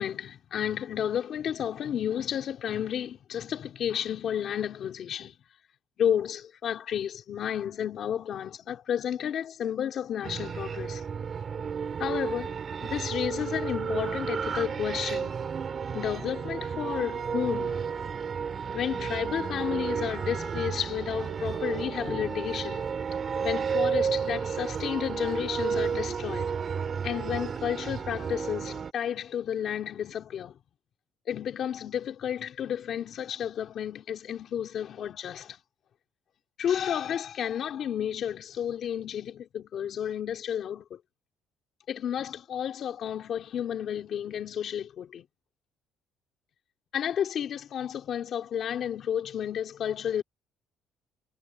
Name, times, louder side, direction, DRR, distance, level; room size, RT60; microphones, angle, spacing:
voice 1, 0.0-5.4 6.0-11.1 12.0-15.4 15.9-18.1 18.7-23.0 23.4-26.5 27.0-30.6 31.3-35.6 36.6-41.0 41.9-45.2 46.9-50.2, left 9 dB, 45° left, 3.1 m, -32 dB
sound 1, 10.2-28.9, right 6 dB, 30° right, 3.5 m, -32 dB
cardioid pair, 160°, 0 cm